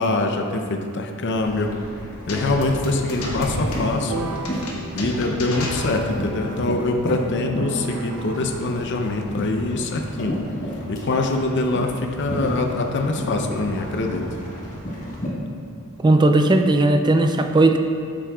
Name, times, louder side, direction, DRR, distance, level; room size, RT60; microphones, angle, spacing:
voice 1, 0.0-1.7 2.3-4.3 5.0-10.4 10.9-14.3, left 2 dB, 55° left, 3 dB, 0.6 m, -24 dB
sound 1, 1.3-15.3, equal, 35° left, 1.4 m, -32 dB
sound 2, 2.3-6.4, left 1 dB, 80° left, 1.2 m, -32 dB
sound 3, 4.1-8.5, right 5 dB, 70° right, 0.5 m, -36 dB
voice 2, 16.0-17.8, right 2 dB, 20° right, 6 dB, 0.3 m, -16 dB
8.6 x 7.4 x 2.3 m, 2.4 s
head